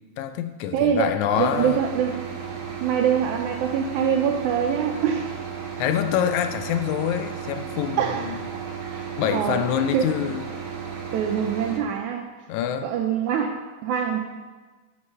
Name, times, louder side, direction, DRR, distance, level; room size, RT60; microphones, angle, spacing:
voice 1, 0.2-1.8 5.8-8.4 9.2-10.5 12.5-12.9, left 9 dB, 80° left, 9 dB, 1.7 m, -25 dB
voice 2, 0.7-1.1 1.4-2.2 2.8-5.4 8.0-8.3 8.8-9.6 9.9-10.1 11.1-12.3 12.8-14.2, right 8 dB, 80° right, 3 dB, 1.9 m, -24 dB
sound 1, 1.3-11.8, right 7 dB, 50° right, 1.8 m, -34 dB
11.5 x 6.4 x 5.4 m, 1.3 s
omnidirectional pair, 3.7 m